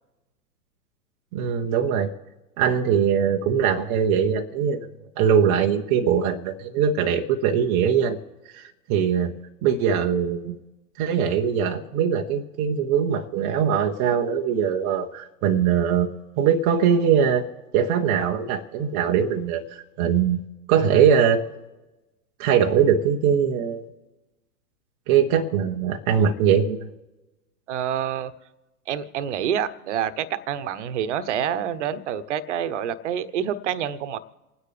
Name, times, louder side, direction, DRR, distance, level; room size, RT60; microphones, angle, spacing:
voice 1, 1.3-2.1 2.6-4.9 5.2-8.2 8.5-9.3 9.6-10.6 11.0-16.1 16.4-17.5 17.7-20.4 20.7-21.5 22.4-23.8 25.1-26.9, right 7 dB, 20° right, 2 dB, 0.5 m, -21 dB
voice 2, 27.7-28.3 28.9-34.2, right 9 dB, 45° right, 13 dB, 0.9 m, -27 dB
28.5 x 9.7 x 3.3 m, 1.1 s
figure-of-eight pair, 110°, 48 cm